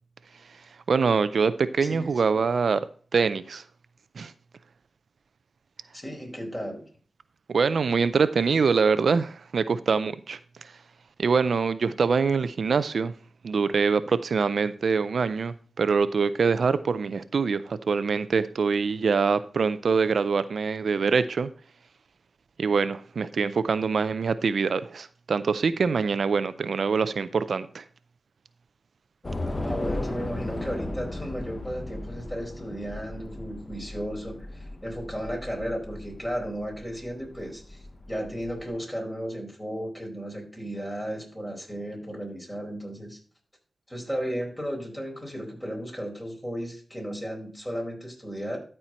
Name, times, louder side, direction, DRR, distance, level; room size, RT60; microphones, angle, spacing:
voice 1, 0.9-2.8 3.1-3.6 4.2-4.3 7.5-10.4 11.2-13.1 13.4-21.5 22.6-27.8, right 5 dB, 75° right, 0.4 m, -24 dB
voice 2, 5.9-6.8 29.6-37.8 38.1-43.2 43.9-48.6, equal, 15° left, 4.5 m, -34 dB
Train / Subway metro underground, 29.2-38.7, left 1 dB, 35° left, 1.2 m, -36 dB
13.0 x 4.4 x 4.3 m
cardioid pair, 55°, 0 cm